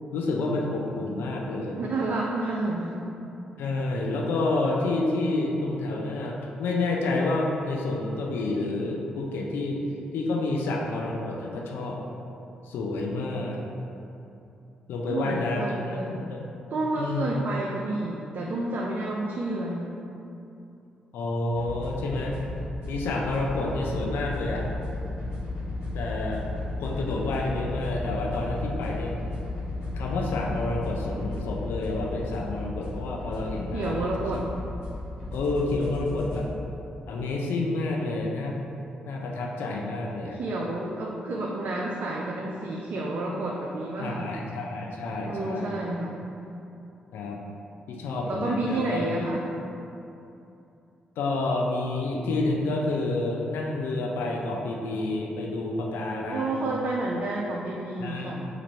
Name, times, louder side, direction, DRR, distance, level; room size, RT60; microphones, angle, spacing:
voice 1, 0.1-1.8 3.6-9.8 10.1-12.0 12.6-13.6 14.9-16.4 17.0-17.3 21.1-22.4 22.8-24.7 25.9-26.5 26.8-29.2 29.9-34.1 35.3-36.5 37.1-38.5 39.1-40.4 44.0-45.8 47.1-47.4 47.9-49.3 51.2-56.7 58.0-58.4, left 2 dB, 65° left, -2 dB, 0.4 m, -29 dB
voice 2, 1.8-3.1 15.1-16.2 16.7-20.0 33.7-34.4 40.3-44.3 45.3-46.2 48.3-49.5 56.2-58.4, right 2 dB, 50° right, -3 dB, 0.4 m, -30 dB
sound 1, 21.5-36.4, left 2 dB, 85° left, 1.0 m, -34 dB
3.1 x 2.4 x 4.2 m, 2.8 s
hypercardioid pair, 40°, 4 cm